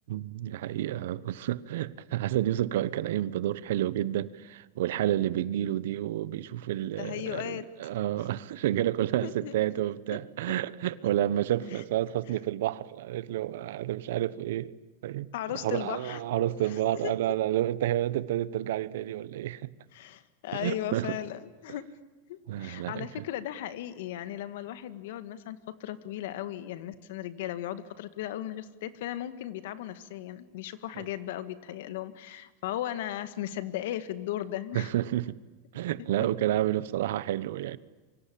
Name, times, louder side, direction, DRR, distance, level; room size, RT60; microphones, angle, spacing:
voice 1, 0.1-14.7 15.0-15.3 15.6-19.7 20.5-21.2 22.5-23.1 31.0-31.1 34.7-35.4 35.7-37.8, right 13 dB, 75° right, 1.1 m, -30 dB
voice 2, 7.0-8.0 9.2-9.5 11.7-11.8 15.3-17.4 19.9-21.9 22.3-34.9 36.2-36.3, left 12 dB, 70° left, 1.9 m, -37 dB
27.5 x 24.5 x 8.6 m
supercardioid pair, 160°, 0 cm